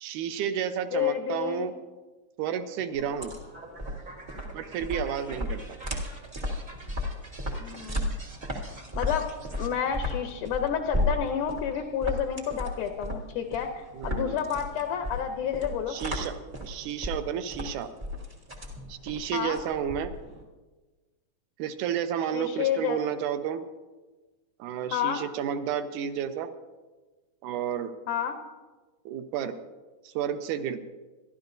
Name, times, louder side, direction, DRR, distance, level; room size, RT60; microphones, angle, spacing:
voice 1, 0.0-1.8 2.4-3.3 4.5-5.8 13.9-14.4 15.9-16.3 16.6-17.9 18.9-20.1 21.6-23.7 24.6-26.5 27.4-27.9 29.1-29.6 30.0-30.8, right 9 dB, 75° right, 9 dB, 2.0 m, -31 dB
voice 2, 0.9-1.7 7.5-8.2 9.0-9.3 9.6-16.0 19.3-19.6 22.3-23.0 24.9-25.2 28.1-28.4, left 8 dB, 75° left, 5 dB, 2.0 m, -30 dB
sound 1, 2.8-9.7, right 2 dB, 30° right, 0.8 m, -48 dB
sound 2, 3.0-20.4, left 1 dB, 55° right, 0.5 m, -34 dB
25.5 x 11.5 x 2.6 m, 1.2 s
omnidirectional pair, 3.9 m